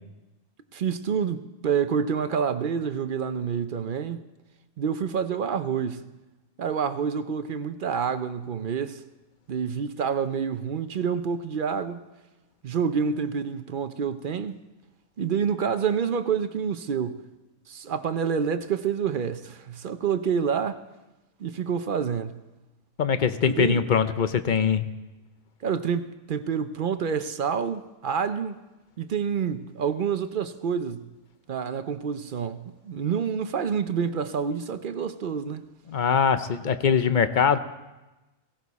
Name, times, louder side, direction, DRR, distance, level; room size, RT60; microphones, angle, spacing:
voice 1, 0.7-4.2 4.8-6.0 6.6-9.0 9.5-12.0 12.6-14.6 15.2-17.2 17.7-20.8 21.4-22.4 23.4-23.8 25.6-28.6 29.0-31.1 31.5-35.6, right 7 dB, 55° right, 0.6 m, -28 dB
voice 2, 23.0-24.9 35.9-37.6, left 7 dB, 50° left, 0.6 m, -22 dB
17.0 x 16.5 x 4.1 m
omnidirectional pair, 1.5 m